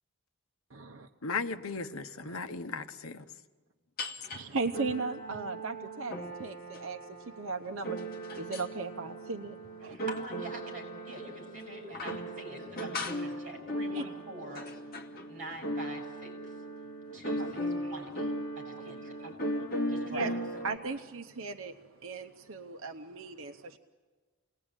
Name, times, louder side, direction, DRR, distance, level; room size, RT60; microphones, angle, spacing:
voice 1, 0.7-1.1 2.2-2.4 4.3-7.0 7.4-8.0 8.4-10.0 12.3-12.4 13.9-14.1 17.4-17.6 20.1-20.3 20.6-21.8 22.0-23.8, right 4 dB, 70° right, 6 dB, 0.8 m, -37 dB
voice 2, 1.2-3.3, left 4 dB, 80° left, 10 dB, 1.0 m, -36 dB
sound 1, 4.0-4.4 4.7-20.8, equal, 45° left, 2.0 m, -38 dB
voice 3, 9.8-14.6 15.3-16.5 17.1-19.4 19.9-20.6, right 1 dB, 35° right, 1 dB, 7.8 m, -45 dB
28.5 x 19.5 x 9.0 m, 1.4 s
head